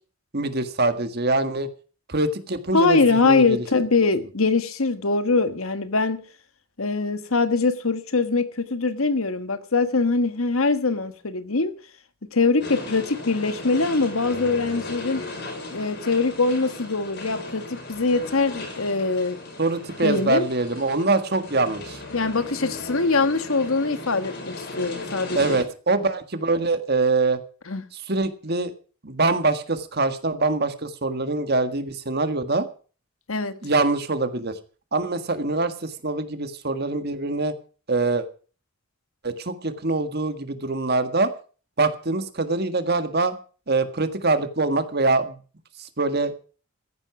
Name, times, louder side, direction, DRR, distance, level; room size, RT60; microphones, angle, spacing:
voice 1, 0.3-1.7 2.1-3.6 19.6-22.0 25.3-27.4 27.9-28.7 29.0-32.7 33.6-34.6 34.9-37.5 37.9-38.3 39.2-41.3 41.8-43.3 43.7-45.4 45.8-46.3, right 3 dB, 50° right, 1.6 m, -24 dB
voice 2, 2.7-6.2 6.8-11.7 12.3-15.2 15.7-19.4 20.0-20.5 22.1-25.6 27.7-27.8 33.3-33.6, left 3 dB, 80° left, 1.5 m, -23 dB
sound 1, 12.6-25.6, left 2 dB, 55° left, 5.2 m, -37 dB
14.5 x 11.0 x 6.0 m
head